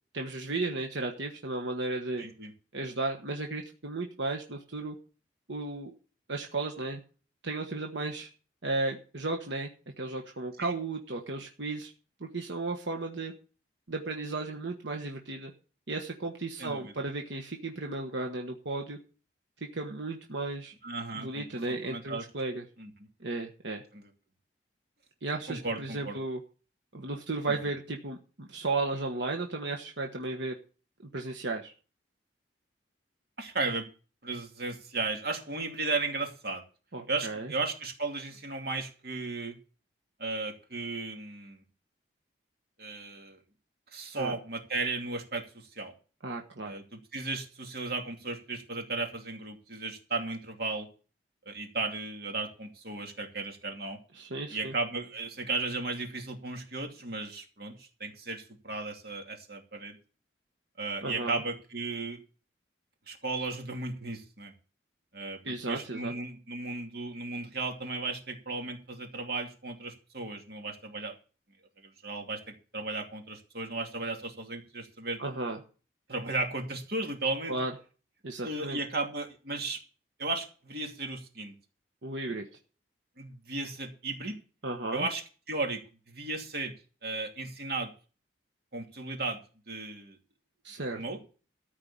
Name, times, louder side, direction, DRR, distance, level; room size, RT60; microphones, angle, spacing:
voice 1, 0.1-2.2 2.7-5.0 5.5-5.9 6.3-7.0 7.4-8.3 8.6-9.7 10.0-11.9 12.2-13.3 13.9-15.5 15.9-19.0 19.6-20.7 21.1-22.6 23.2-23.8 25.2-26.4 26.9-30.6 31.0-31.7 36.9-37.5 44.1-44.3 46.2-46.7 54.1-54.7 61.0-61.4 65.4-66.1 75.2-75.6 77.5-77.7 78.2-78.8 82.0-82.5 84.6-85.1 90.6-91.0, right 2 dB, 70° right, 2 dB, 1.3 m, -34 dB
voice 2, 2.2-2.5 10.6-10.7 16.6-16.9 20.8-22.2 22.8-22.9 23.9-24.1 25.5-26.2 27.5-27.6 33.4-33.9 34.2-36.6 37.1-39.6 40.2-41.6 42.8-43.4 43.9-45.9 46.6-50.9 51.5-54.0 54.5-60.0 60.8-62.2 63.1-64.5 65.1-71.1 71.8-75.2 76.1-77.6 78.4-79.8 80.2-81.5 83.2-84.4 84.9-85.2 85.5-85.8 86.1-86.7 87.0-87.9 88.7-89.4 89.7-90.2 90.9-91.2, right 3 dB, 55° right, 3 dB, 2.5 m, -35 dB
14.0 x 4.9 x 8.7 m, 0.38 s
head